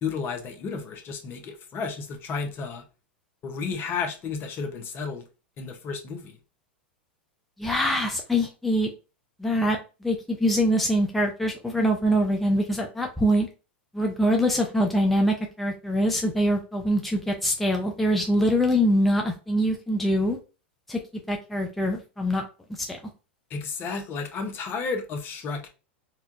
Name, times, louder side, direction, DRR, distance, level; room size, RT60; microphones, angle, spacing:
voice 1, 0.0-2.8 3.4-5.2 5.6-6.4 23.5-25.7, left 5 dB, 35° left, 0.8 m, -32 dB
voice 2, 7.6-8.9 9.4-13.5 13.9-20.4 20.9-21.0 21.3-22.4 22.7-23.0, equal, ahead, 0.5 m, -24 dB
4.2 x 2.3 x 2.5 m
hypercardioid pair, 110°, 6 cm